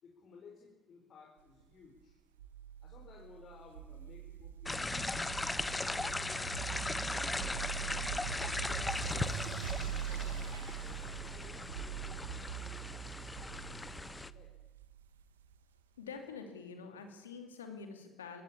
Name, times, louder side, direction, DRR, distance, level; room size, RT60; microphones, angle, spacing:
voice 1, 0.0-2.2 2.8-4.9 5.4-7.6 8.2-13.8 14.2-14.5, left 5 dB, 55° left, 0 dB, 4.3 m, -58 dB
sound 1, 2.4-15.6, right 9 dB, 90° right, 0.8 m, -43 dB
sound 2, 4.7-14.3, left 2 dB, 20° left, 1.0 m, -38 dB
voice 2, 16.0-18.4, left 5 dB, 90° left, 6 dB, 2.6 m, -46 dB
21.5 x 16.5 x 8.6 m, 1.1 s
hypercardioid pair, 50°, 0 cm